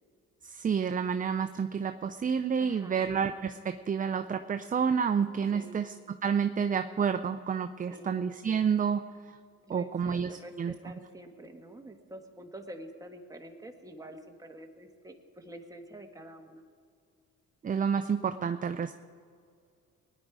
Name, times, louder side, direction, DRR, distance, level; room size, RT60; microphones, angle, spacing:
voice 1, 0.4-5.9 6.2-9.0 9.7-10.7 17.6-18.9, right 6 dB, 25° right, 9 dB, 0.5 m, -29 dB
voice 2, 2.6-3.1 5.5-5.8 7.9-8.2 9.6-16.6, right 1 dB, 10° right, 3 dB, 1.6 m, -47 dB
20.0 x 10.0 x 4.8 m, 2.2 s
cardioid pair, 90°, 30 cm